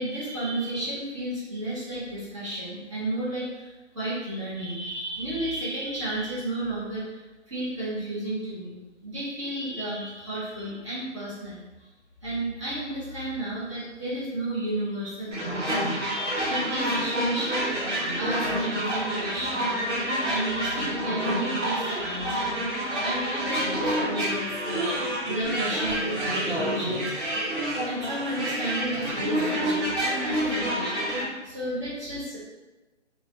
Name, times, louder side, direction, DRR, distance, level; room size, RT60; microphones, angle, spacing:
voice 1, 0.0-11.6 12.2-17.8 18.1-20.0 20.3-22.6 23.0-27.4 27.8-31.0 31.4-32.4, right 1 dB, 25° right, -10 dB, 0.8 m, -33 dB
sound 1, 15.3-31.2, equal, 80° right, 1.2 m, -28 dB
2.9 x 2.3 x 2.2 m, 1.2 s
figure-of-eight pair, 155°, 36 cm